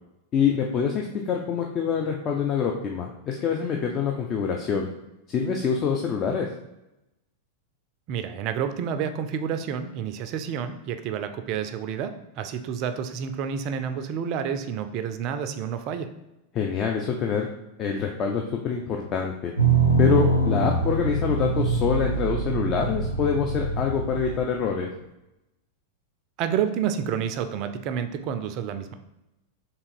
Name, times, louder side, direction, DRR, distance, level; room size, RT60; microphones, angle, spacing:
voice 1, 0.3-4.9 5.3-6.5 16.5-17.5 17.8-19.5 20.0-24.9, left 6 dB, 30° left, 1 dB, 0.4 m, -25 dB
voice 2, 8.1-16.1 26.4-28.9, right 8 dB, 40° right, 8 dB, 0.4 m, -29 dB
sound 1, 19.6-24.4, right 3 dB, 90° right, 0.6 m, -24 dB
3.7 x 2.8 x 4.5 m, 0.94 s
figure-of-eight pair, 90°, 0 cm